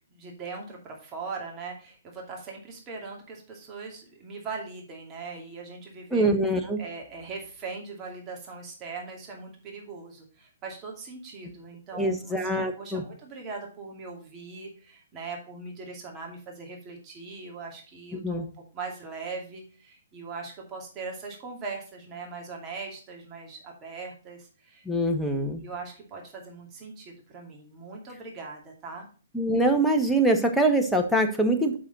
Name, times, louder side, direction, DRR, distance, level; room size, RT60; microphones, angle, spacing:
voice 1, 0.1-6.3 6.8-18.5 18.7-24.8 25.3-29.1, right 4 dB, 25° right, 0 dB, 2.5 m, -40 dB
voice 2, 6.1-6.8 11.9-13.0 18.2-18.5 24.8-25.6 29.3-31.8, right 1 dB, ahead, 2 dB, 1.2 m, -24 dB
7.5 x 6.2 x 4.1 m, 0.38 s
figure-of-eight pair, 125°, 0 cm